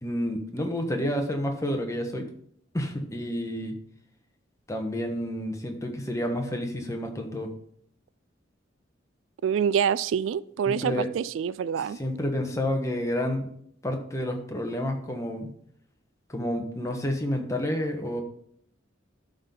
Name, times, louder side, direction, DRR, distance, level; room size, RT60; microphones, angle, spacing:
voice 1, 0.0-2.3 2.7-3.7 4.7-7.5 10.7-11.1 12.0-13.5 13.8-15.5 16.3-18.2, left 1 dB, 15° left, 3 dB, 1.3 m, -29 dB
voice 2, 9.4-12.0, right 8 dB, 80° right, 18 dB, 0.3 m, -26 dB
12.0 x 4.0 x 5.4 m, 0.67 s
head